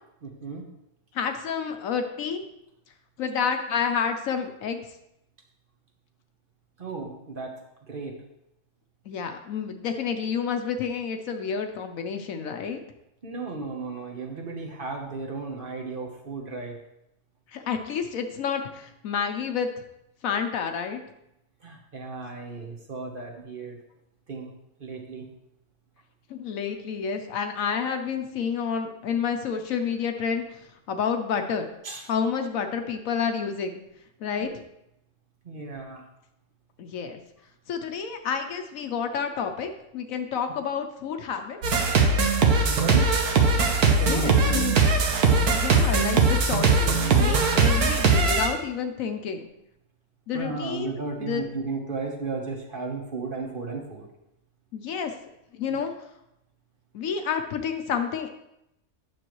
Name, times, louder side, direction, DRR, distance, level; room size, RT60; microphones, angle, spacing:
voice 1, 0.2-0.6 6.8-7.5 7.9-8.1 13.2-16.8 21.6-23.8 24.3-24.5 24.8-25.2 31.8-32.0 34.4-34.6 35.4-36.0 42.6-43.1 44.0-44.7 50.3-54.1 55.7-55.8, right 3 dB, 40° right, 0 dB, 1.1 m, -34 dB
voice 2, 1.1-2.4 3.2-4.8 9.1-12.8 17.5-19.7 20.2-21.0 26.3-30.6 30.9-31.6 32.1-33.8 34.2-34.5 36.8-37.2 37.7-41.6 43.9-44.7 45.5-49.5 50.3-50.9 51.2-51.4 54.7-55.1 55.5-55.9 56.9-58.3, left 6 dB, 70° left, 6 dB, 1.1 m, -29 dB
sound 1, 41.6-48.5, right 4 dB, 85° right, 1.5 m, -20 dB
9.2 x 6.8 x 3.1 m, 0.84 s
omnidirectional pair, 1.5 m